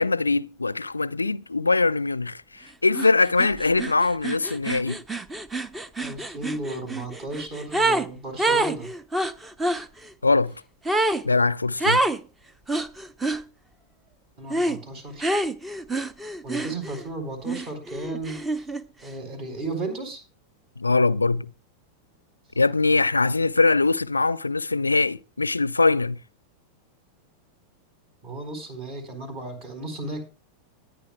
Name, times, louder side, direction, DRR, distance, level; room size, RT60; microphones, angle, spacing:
voice 1, 0.0-5.0 10.2-10.6 11.2-12.0 20.8-21.5 22.6-26.2, left 3 dB, 80° left, 0.4 m, -22 dB
sound 1, 2.9-3.1 3.4-8.1 8.4-9.8 10.8-11.2 11.8-12.2 12.7-13.4 14.5-14.8 15.2-17.1 17.4-18.8, right 2 dB, 10° right, 0.7 m, -26 dB
voice 2, 6.0-8.9 14.4-15.3 16.4-18.7 19.0-20.2 28.2-30.2, right 2 dB, 40° right, 4.3 m, -34 dB
20.0 x 9.5 x 2.2 m
figure-of-eight pair, 90°, 0 cm